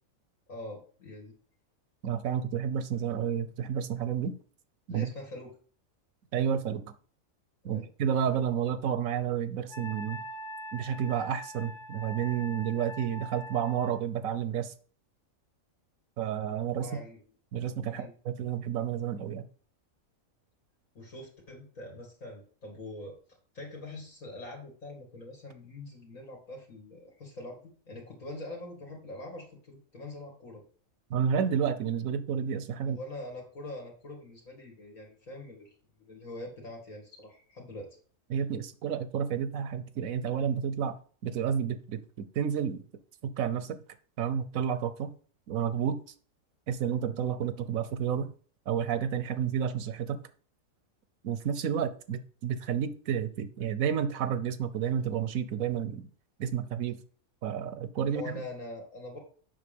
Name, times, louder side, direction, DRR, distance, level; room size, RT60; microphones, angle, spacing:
voice 1, 0.5-1.3 4.9-5.5 7.6-7.9 16.8-17.2 17.9-18.1 20.9-23.2 23.5-27.6 27.9-30.6 32.8-37.9 58.1-59.2, left 2 dB, 75° left, 2.6 m, -44 dB
voice 2, 2.0-4.4 4.9-5.1 6.3-6.8 7.6-10.2 10.7-14.7 16.2-16.9 17.5-19.4 31.1-33.0 38.3-40.9 41.2-42.8 43.2-43.8 44.2-45.1 45.5-46.0 46.7-48.3 48.7-50.2 51.2-56.1 56.4-57.0 57.4-58.4, right 8 dB, 80° right, 1.2 m, -30 dB
Wind instrument woodwind instrument, 9.7-14.0, right 1 dB, 50° left, 0.8 m, -43 dB
7.6 x 5.8 x 5.2 m
omnidirectional pair, 1.4 m